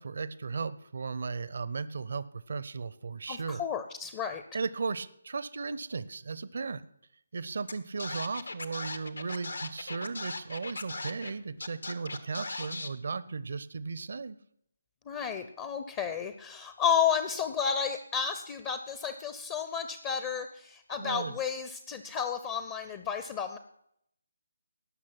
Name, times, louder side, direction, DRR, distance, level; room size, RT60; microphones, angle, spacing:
voice 1, 0.0-3.6 4.5-6.8 7.3-14.4 21.0-21.3, right 4 dB, 50° right, 16 dB, 0.6 m, -36 dB
voice 2, 3.3-4.4 15.1-23.6, left 7 dB, 20° left, 10 dB, 0.6 m, -32 dB
Scratching (performance technique), 7.7-7.8 8.0-11.3 11.6-12.9, left 3 dB, 70° left, 1.2 m, -38 dB
18.5 x 6.2 x 5.9 m, 0.73 s
figure-of-eight pair, 150°, 0 cm